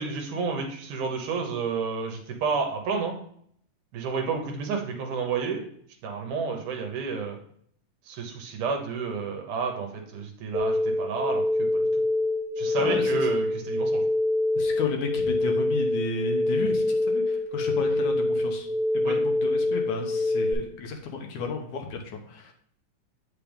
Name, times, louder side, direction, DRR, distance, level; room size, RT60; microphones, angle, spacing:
voice 1, 0.0-3.2 3.9-5.7 6.0-7.4 8.1-11.9 12.6-14.0 19.0-19.2, right 5 dB, 75° right, 3 dB, 2.5 m, -30 dB
sound 1, 10.5-20.5, left 2 dB, 40° left, 2.0 m, -25 dB
voice 2, 12.8-13.3 14.6-18.7 18.9-22.5, left 4 dB, 70° left, 2 dB, 2.2 m, -33 dB
8.4 x 5.9 x 3.5 m, 0.64 s
omnidirectional pair, 3.7 m